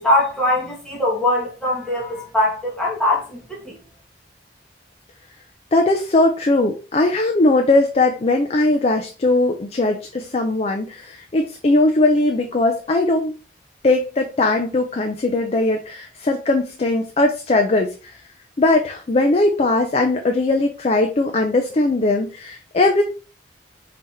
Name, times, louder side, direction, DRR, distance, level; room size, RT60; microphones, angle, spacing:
voice 1, 0.0-3.8, left 1 dB, 5° left, 1.3 m, -21 dB
voice 2, 5.7-13.3 13.8-17.9 18.6-23.0, left 2 dB, 35° left, 0.5 m, -19 dB
5.4 x 2.9 x 3.2 m
head